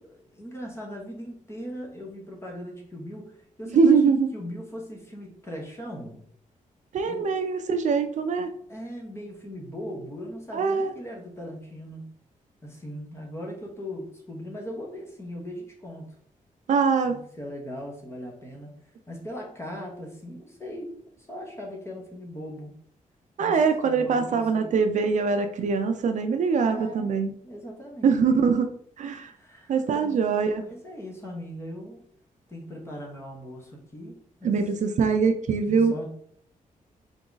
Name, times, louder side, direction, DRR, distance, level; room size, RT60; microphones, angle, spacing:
voice 1, 0.1-6.2 7.0-7.4 8.7-12.0 12.6-16.1 17.0-18.7 19.1-22.7 23.4-24.8 26.7-27.1 27.4-28.2 29.4-30.2 30.5-32.0 32.5-34.1 34.4-34.6 35.6-36.1, equal, 20° left, -1 dB, 1.1 m, -39 dB
voice 2, 3.7-4.3 6.9-8.5 10.5-10.9 16.7-17.2 23.4-27.3 28.0-28.7 29.0-29.3 29.7-30.6 34.4-35.9, right 5 dB, 60° right, 7 dB, 0.4 m, -23 dB
3.8 x 3.5 x 3.9 m, 0.64 s
wide cardioid pair, 180°, 14 cm